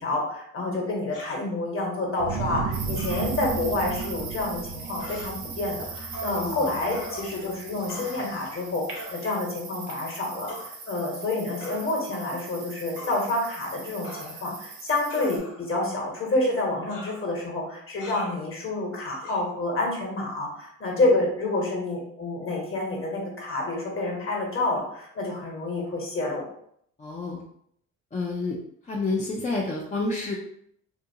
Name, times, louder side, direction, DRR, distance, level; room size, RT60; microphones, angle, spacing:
voice 1, 0.0-26.5, left 2 dB, 40° left, -2 dB, 1.2 m, -28 dB
sound 1, 1.1-1.4 2.9-3.3 3.9-4.1 5.0-5.3 6.1-6.4 6.9-7.5 7.9-8.3 9.0-9.2 10.5-10.7 11.6-11.9 13.0-13.2 14.0-14.6 15.1-15.7 16.9-17.2 18.0-18.4 19.2-19.4, left 1 dB, 70° left, 1.1 m, -41 dB
sound 2, 2.2-7.7, right 5 dB, 45° right, 0.4 m, -34 dB
sound 3, 2.7-15.4, right 4 dB, 90° right, 0.8 m, -40 dB
voice 2, 6.4-6.8 21.0-21.2 27.0-27.4 28.1-28.6 28.8-30.3, left 3 dB, 25° left, -3 dB, 0.5 m, -29 dB
2.8 x 2.5 x 2.7 m, 0.69 s
cardioid pair, 90°, 32 cm